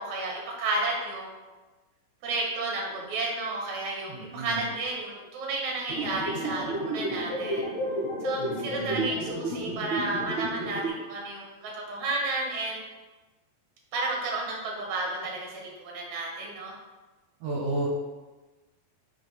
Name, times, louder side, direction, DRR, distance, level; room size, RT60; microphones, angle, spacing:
voice 1, 0.0-1.4 2.2-7.7 8.2-12.8 13.9-16.7, right 2 dB, 60° right, -2 dB, 2.4 m, -32 dB
voice 2, 4.1-4.6 8.4-9.1 17.4-17.9, right 2 dB, 75° right, -4 dB, 2.5 m, -33 dB
sound 1, 5.9-10.9, right 1 dB, 65° left, 2.3 m, -31 dB
5.5 x 3.9 x 5.2 m, 1.2 s
omnidirectional pair, 4.5 m